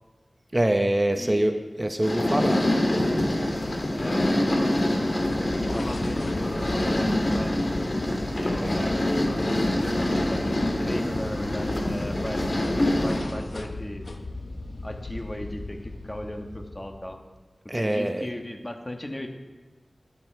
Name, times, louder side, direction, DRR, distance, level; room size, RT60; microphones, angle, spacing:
voice 1, 0.5-2.7 8.6-8.7 17.7-18.3, right 1 dB, 25° right, 6 dB, 0.7 m, -24 dB
voice 2, 1.2-1.6 4.0-7.5 8.3-9.0 9.3-9.5 10.0-12.5 13.0-14.1 14.8-17.2 17.7-19.3, left 1 dB, 25° left, 3 dB, 1.6 m, -37 dB
sound 1, 2.0-13.2, left 1 dB, 50° left, 2.5 m, -25 dB
sound 2, 5.1-17.3, left 2 dB, 75° left, 0.9 m, -37 dB
12.0 x 11.5 x 4.7 m, 1.3 s
wide cardioid pair, 55°, 0 cm